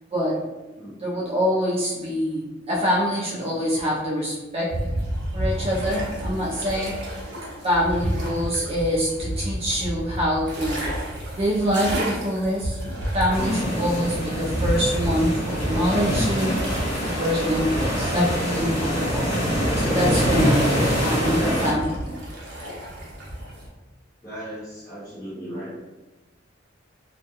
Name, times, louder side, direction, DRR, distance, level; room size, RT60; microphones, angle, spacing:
voice 1, 1.0-4.7 5.3-6.9 7.6-10.9 11.3-12.8 13.1-16.7 17.0-19.3 19.8-22.1, equal, 30° right, -5 dB, 0.4 m, -25 dB
sound 1, 4.7-23.7, right 1 dB, 65° right, 0.7 m, -31 dB
sound 2, 13.3-21.7, equal, 30° left, 0.9 m, -25 dB
voice 2, 24.2-25.8, equal, 15° left, -11 dB, 0.6 m, -36 dB
2.3 x 2.2 x 2.8 m, 1.1 s
head